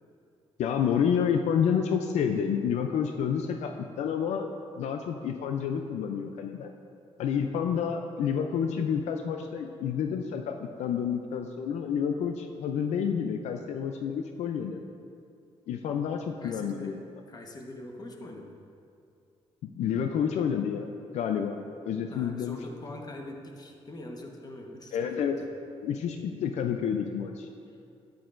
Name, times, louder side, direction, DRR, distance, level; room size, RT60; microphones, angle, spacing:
voice 1, 0.6-3.7 4.0-6.7 7.2-14.8 15.7-17.0 19.8-22.6 24.9-25.4 25.8-27.5, left 7 dB, 80° left, 5 dB, 0.4 m, -29 dB
voice 2, 16.4-18.6 22.1-25.5 27.7-27.8, left 1 dB, 35° left, 2 dB, 1.2 m, -43 dB
9.4 x 9.3 x 2.5 m, 2.5 s
cardioid pair, 75°, 11 cm